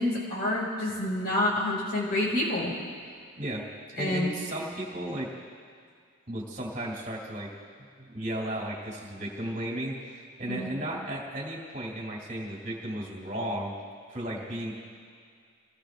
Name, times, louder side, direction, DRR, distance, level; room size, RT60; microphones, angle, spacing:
voice 1, 0.0-2.7 4.0-4.3 10.5-10.7, left 1 dB, 45° left, -4 dB, 5.6 m, -28 dB
voice 2, 3.4-5.3 6.3-7.5 8.0-13.7 14.1-14.8, right 1 dB, 35° right, -4 dB, 3.3 m, -34 dB
30.0 x 18.5 x 2.6 m, 2.2 s
head